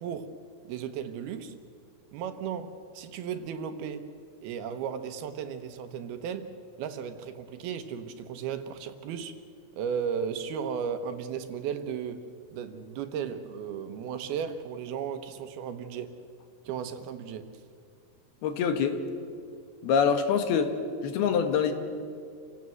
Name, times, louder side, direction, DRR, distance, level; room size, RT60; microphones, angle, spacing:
voice 1, 0.7-1.5 2.1-4.1 4.4-6.5 6.8-9.3 9.8-12.2 12.5-16.2 16.7-17.5, right 7 dB, 75° right, 9 dB, 2.9 m, -35 dB
voice 2, 18.4-19.0 19.8-20.7 21.0-21.7, left 7 dB, 75° left, 7 dB, 3.3 m, -25 dB
29.0 x 17.0 x 7.8 m, 2.3 s
omnidirectional pair, 4.7 m